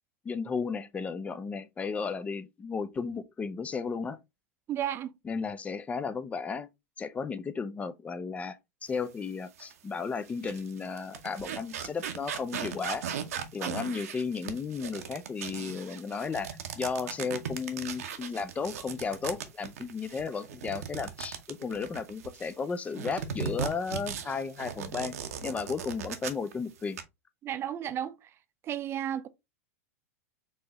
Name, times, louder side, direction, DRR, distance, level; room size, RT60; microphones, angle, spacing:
voice 1, 0.2-4.2 5.3-6.7 7.0-13.0 13.5-25.2 25.4-27.0, left 5 dB, 15° left, 0.4 m, -34 dB
voice 2, 4.7-5.1 27.4-28.3 28.6-29.3, right 10 dB, 30° right, 0.5 m, -33 dB
sound 1, 9.6-9.7 10.3-22.5 22.9-26.5 26.8-27.0, right 8 dB, 75° right, 0.7 m, -38 dB
4.5 x 2.8 x 2.9 m
hypercardioid pair, 105°, 8 cm